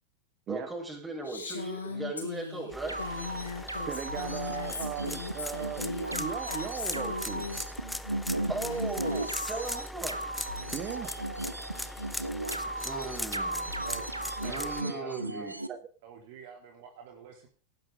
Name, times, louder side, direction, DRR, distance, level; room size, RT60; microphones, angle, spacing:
voice 1, 0.5-3.0 8.5-10.2 12.5-13.8 14.4-15.6, right 3 dB, 15° right, 0 dB, 7.5 m, -37 dB
Female speech woman speaking, 1.3-7.6 8.4-9.8, left 4 dB, 75° left, 4.2 m, -39 dB
sound 1, 2.7-14.8, left 1 dB, 5° left, 0.8 m, -40 dB
sound 2, 2.9-15.7, right 1 dB, 85° right, 1.3 m, -36 dB
voice 2, 3.9-7.5 10.7-11.1 15.7-15.8, right 9 dB, 30° right, 8 dB, 1.8 m, -37 dB
voice 3, 14.4-15.6 16.0-17.5, right 7 dB, 50° right, 2 dB, 3.3 m, -46 dB
18.5 x 11.0 x 3.7 m, 0.37 s
figure-of-eight pair, 90°, 0 cm